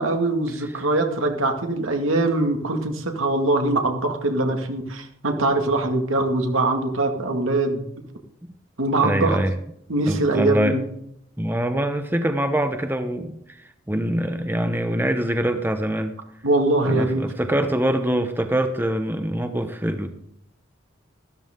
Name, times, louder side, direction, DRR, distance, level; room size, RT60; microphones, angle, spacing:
voice 1, 0.0-7.8 8.8-9.4 9.9-10.8 16.4-17.2, right 2 dB, 85° right, 3 dB, 2.2 m, -22 dB
voice 2, 8.9-9.5 10.1-10.8 11.4-16.1 16.9-20.1, right 1 dB, 10° right, 7 dB, 0.9 m, -24 dB
13.0 x 13.0 x 3.8 m, 0.75 s
head